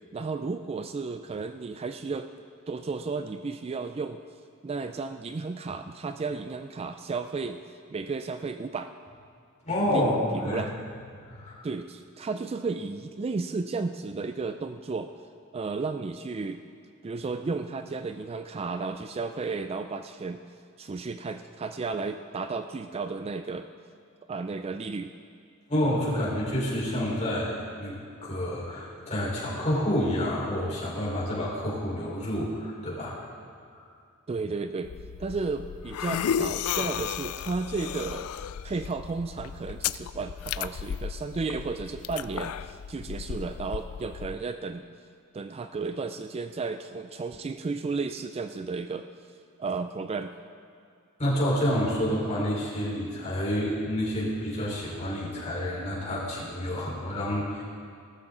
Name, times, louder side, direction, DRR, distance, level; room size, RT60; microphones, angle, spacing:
voice 1, 0.1-2.3 2.7-4.2 4.6-7.6 7.9-8.9 9.9-10.7 11.6-15.1 15.5-16.6 17.0-20.4 20.8-23.7 24.3-25.1 34.3-34.9 35.2-38.3 38.6-44.8 45.3-49.1 49.6-50.4, right 4 dB, 25° right, 8 dB, 0.3 m, -33 dB
voice 2, 9.6-10.6 11.1-11.6 25.7-28.0 28.2-33.2 51.2-57.6, equal, 35° left, -6 dB, 4.3 m, -28 dB
sound 1, 34.8-44.3, left 8 dB, 70° left, 0.3 m, -34 dB
18.0 x 13.0 x 3.8 m, 2.3 s
head